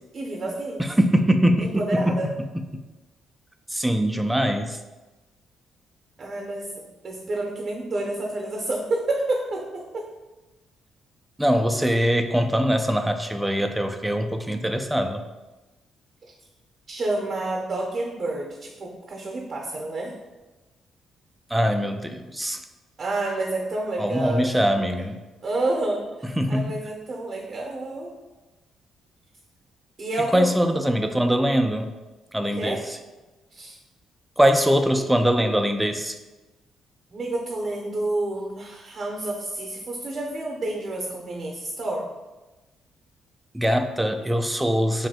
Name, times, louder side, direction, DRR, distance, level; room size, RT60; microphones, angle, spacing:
voice 1, 0.1-0.8 1.6-2.3 6.2-6.7 7.0-10.1 16.9-20.1 23.0-25.0 25.4-28.1 30.0-30.5 32.6-32.8 33.5-33.7 37.1-42.1, right 2 dB, 40° right, 0 dB, 0.7 m, -29 dB
voice 2, 0.8-2.1 3.7-4.8 11.4-15.2 21.5-22.6 24.0-25.2 26.4-26.8 30.3-31.9 32.3-32.8 34.4-36.2 43.5-45.1, equal, 5° right, 6 dB, 0.3 m, -22 dB
3.0 x 2.6 x 4.3 m, 1.1 s
cardioid pair, 95°, 0 cm